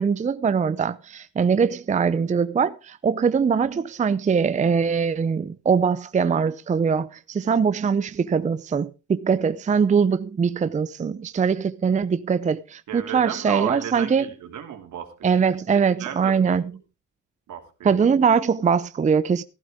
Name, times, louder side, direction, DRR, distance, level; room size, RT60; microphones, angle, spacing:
voice 1, 0.0-14.2 15.2-16.6 17.8-19.4, right 6 dB, 25° right, 0.5 m, -22 dB
voice 2, 12.9-15.4 16.0-16.6 17.5-18.0, right 9 dB, 75° right, 2.7 m, -33 dB
14.5 x 12.0 x 3.6 m
cardioid pair, 90°, 30 cm